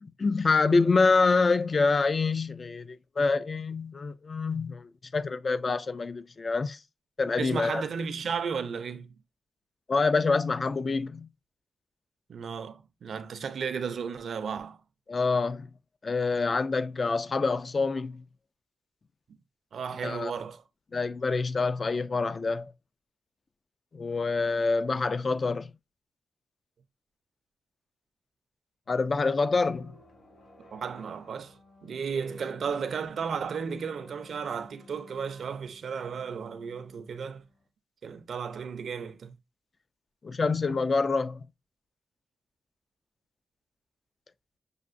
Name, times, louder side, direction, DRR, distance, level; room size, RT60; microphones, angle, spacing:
voice 1, 0.0-6.8 7.2-7.8 9.9-11.3 15.1-15.7 16.0-18.2 20.0-20.3 20.9-22.7 23.9-25.7 28.9-29.9 40.2-41.5, left 4 dB, 40° left, 0.3 m, -26 dB
voice 2, 7.4-9.1 12.3-14.8 19.7-20.6 30.7-37.4 38.0-39.4, right 6 dB, 70° right, 0.5 m, -34 dB
sound 1, 28.9-37.6, left 2 dB, 65° left, 2.2 m, -54 dB
6.3 x 2.5 x 2.5 m
cardioid pair, 85°, 0 cm